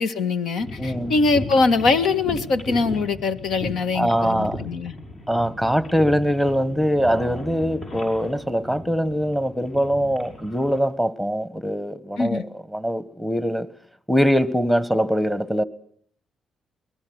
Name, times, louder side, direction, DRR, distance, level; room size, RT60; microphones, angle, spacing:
voice 1, 0.0-5.0 12.2-12.4, left 3 dB, 70° left, 1.8 m, -22 dB
sound 1, 0.6-10.8, left 1 dB, 55° left, 6.4 m, -36 dB
voice 2, 0.8-1.1 3.9-4.6 5.3-13.7 14.1-15.6, equal, ahead, 1.4 m, -22 dB
23.0 x 19.5 x 8.1 m
cardioid pair, 90°, 0 cm